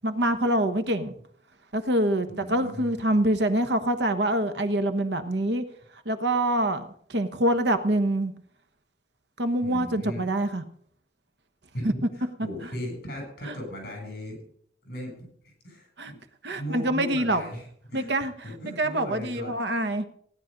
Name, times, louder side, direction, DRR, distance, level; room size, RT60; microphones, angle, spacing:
voice 1, 0.0-1.1 1.7-5.6 6.0-8.3 9.4-10.6 11.8-11.9 13.5-13.6 16.0-16.1 16.4-17.4 17.9-18.3 18.8-20.1, right 1 dB, 70° right, 9 dB, 1.3 m, -25 dB
voice 2, 2.3-2.9 9.6-10.3 11.7-14.4 14.8-16.2 16.6-19.6, equal, 55° left, 2 dB, 7.7 m, -37 dB
17.0 x 10.5 x 5.3 m, 0.63 s
head